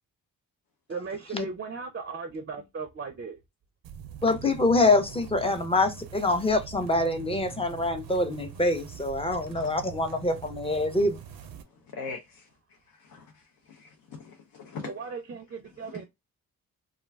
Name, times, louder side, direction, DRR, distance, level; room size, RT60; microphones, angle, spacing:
voice 1, 0.9-3.4 14.8-16.0, right 5 dB, 35° right, 0.4 m, -37 dB
sound 1, 3.8-11.6, right 8 dB, 90° right, 0.5 m, -43 dB
voice 2, 4.2-11.2, left 2 dB, 15° left, 0.5 m, -25 dB
voice 3, 11.9-12.5 13.0-13.2 13.7-14.9, left 4 dB, 75° left, 0.6 m, -40 dB
2.3 x 2.2 x 3.2 m
cardioid pair, 75°, 34 cm